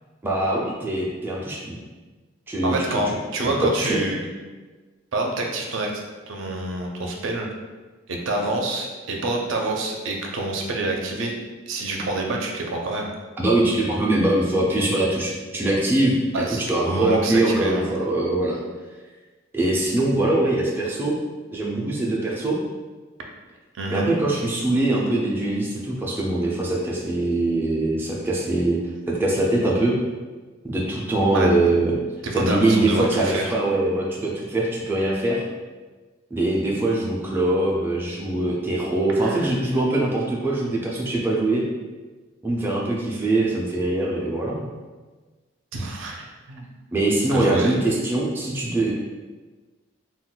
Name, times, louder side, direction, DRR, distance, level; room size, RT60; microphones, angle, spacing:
voice 1, 0.2-1.8 2.5-2.8 3.1-3.2 3.4-4.0 13.4-18.6 19.5-21.2 21.5-22.6 23.9-28.8 29.1-30.0 30.6-31.9 32.3-35.4 36.3-41.6 42.4-44.6 46.9-48.9, right 2 dB, 10° right, -4 dB, 0.3 m, -22 dB
voice 2, 2.6-4.2 5.1-5.9 6.3-7.5 8.1-11.3 11.7-13.1 16.3-16.6 16.9-17.9 23.7-24.1 31.3-31.8 32.2-33.6 39.1-39.5 45.7-46.7 47.3-47.8, right 2 dB, 75° right, 1 dB, 0.5 m, -27 dB
2.2 x 2.2 x 3.8 m, 1.3 s
head